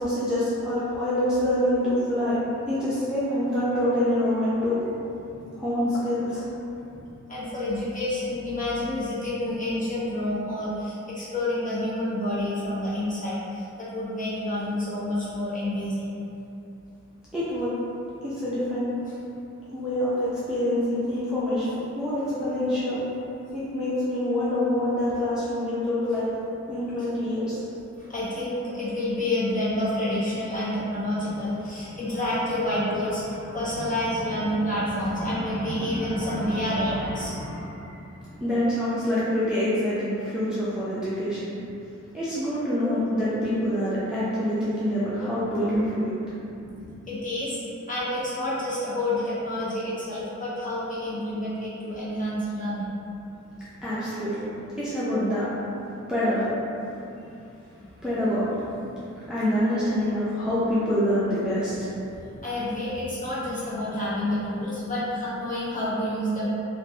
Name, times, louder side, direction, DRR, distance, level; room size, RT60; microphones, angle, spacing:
voice 1, 0.0-2.4 2.7-4.8 5.4-6.5 17.3-17.7 18.2-18.9 19.7-23.0 23.5-26.3 26.7-27.6 38.4-41.5 42.1-46.1 53.8-54.5 54.8-55.5 56.1-56.5 58.0-59.0 59.3-61.9, left 1 dB, 5° right, -11 dB, 0.5 m, -26 dB
voice 2, 7.3-16.1 28.1-38.0 47.1-47.6 47.9-52.9 62.4-66.5, left 1 dB, 25° left, -11 dB, 0.9 m, -28 dB
2.9 x 2.2 x 2.6 m, 2.7 s
wide cardioid pair, 85°, 30 cm